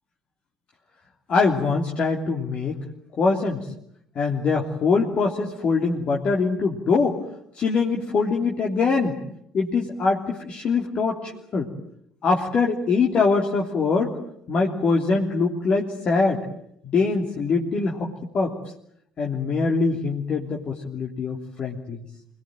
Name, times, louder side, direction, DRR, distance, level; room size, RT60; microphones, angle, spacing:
voice 1, 1.3-2.8 3.2-3.6 4.1-7.2 7.5-9.1 9.5-11.7 12.2-14.1 14.5-16.4 16.8-18.1 18.3-18.5 19.2-22.0, left 4 dB, 40° left, -1 dB, 3.2 m, -23 dB
26.5 x 21.0 x 9.1 m, 0.73 s
figure-of-eight pair, 55°, 3 cm